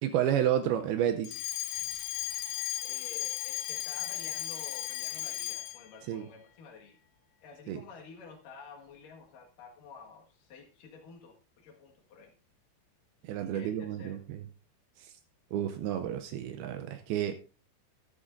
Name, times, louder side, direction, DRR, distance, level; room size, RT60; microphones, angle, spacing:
voice 1, 0.0-1.4 6.1-6.3 7.7-7.8 13.2-14.4 15.0-15.1 15.5-17.4, right 10 dB, 80° right, 7 dB, 2.6 m, -30 dB
Alarm, 1.2-5.9, left 15 dB, 90° left, 2.8 m, -35 dB
voice 2, 2.8-7.0 7.4-12.3 13.5-14.2, left 5 dB, 65° left, 0 dB, 3.2 m, -51 dB
13.5 x 11.0 x 2.6 m, 0.33 s
omnidirectional pair, 4.5 m